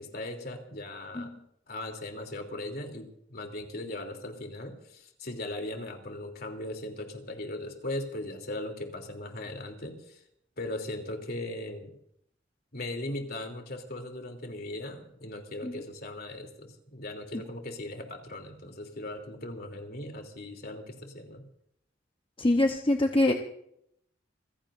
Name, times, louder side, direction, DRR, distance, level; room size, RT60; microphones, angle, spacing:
voice 1, 0.0-1.3 1.7-10.2 10.6-12.0 12.7-21.4, left 1 dB, 55° left, 4 dB, 3.2 m, -38 dB
voice 2, 22.4-23.3, left 1 dB, 30° left, 3 dB, 1.0 m, -24 dB
27.5 x 16.0 x 2.6 m, 0.75 s
head